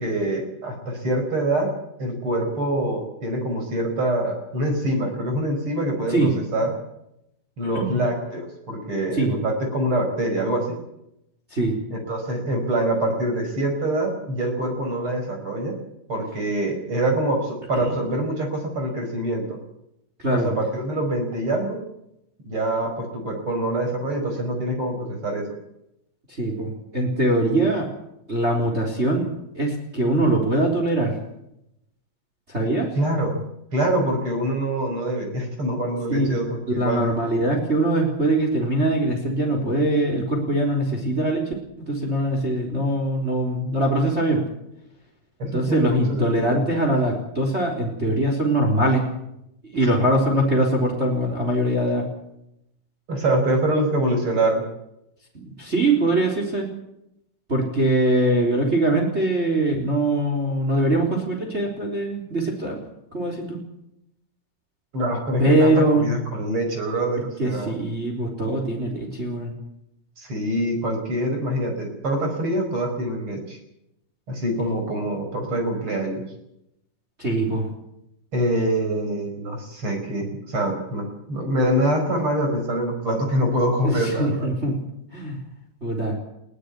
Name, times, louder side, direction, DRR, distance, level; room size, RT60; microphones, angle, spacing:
voice 1, 0.0-1.7 2.0-6.7 7.6-10.8 11.9-15.8 16.1-19.6 20.3-21.8 22.4-25.5 33.0-33.4 33.7-37.1 45.4-46.6 49.7-49.9 53.1-54.6 64.9-67.7 70.2-73.6 74.3-76.2 78.3-84.5, right 1 dB, 40° right, 4 dB, 5.9 m, -25 dB
voice 2, 20.2-20.5 26.3-27.9 28.3-29.3 29.5-31.2 32.5-32.9 36.1-36.3 36.8-44.4 45.4-49.0 49.7-52.0 55.3-56.7 57.5-62.8 63.1-63.6 65.4-66.1 67.4-69.5 77.2-77.7 83.8-84.8 85.1-85.4 85.8-86.1, right 1 dB, 20° right, 1 dB, 4.0 m, -22 dB
21.5 x 16.5 x 8.4 m, 0.80 s
omnidirectional pair, 3.9 m